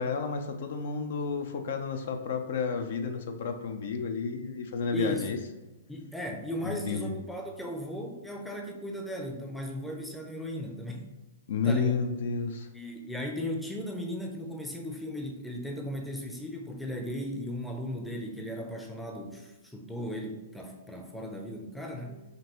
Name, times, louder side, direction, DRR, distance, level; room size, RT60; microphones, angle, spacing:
voice 1, 0.0-5.4 6.6-7.1 11.5-12.7, left 5 dB, 65° left, 6 dB, 0.5 m, -31 dB
voice 2, 4.9-5.3 5.9-11.0 11.6-12.0 12.7-22.2, equal, 5° left, 2 dB, 0.5 m, -36 dB
5.2 x 2.6 x 2.9 m, 1.1 s
hypercardioid pair, 135°, 0 cm